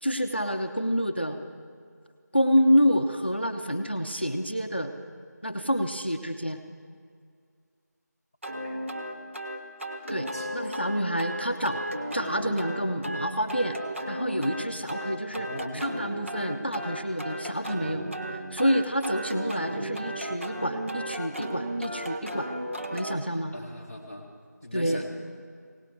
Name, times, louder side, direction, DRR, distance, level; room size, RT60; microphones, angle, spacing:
voice 1, 0.0-1.4 2.3-4.9 5.4-6.6 10.1-11.8 12.1-13.8 14.1-18.1 18.5-22.5 22.9-23.6 24.7-25.0, equal, 35° left, 6 dB, 0.6 m, -28 dB
sound 1, 8.4-23.2, right 1 dB, 45° right, 1.0 m, -35 dB
voice 2, 8.6-9.1 10.3-10.5 15.4-15.8 19.8-19.9 23.5-24.2 24.6-25.1, left 1 dB, 10° right, -6 dB, 1.0 m, -40 dB
21.0 x 18.0 x 3.3 m, 2.2 s
figure-of-eight pair, 175°, 10 cm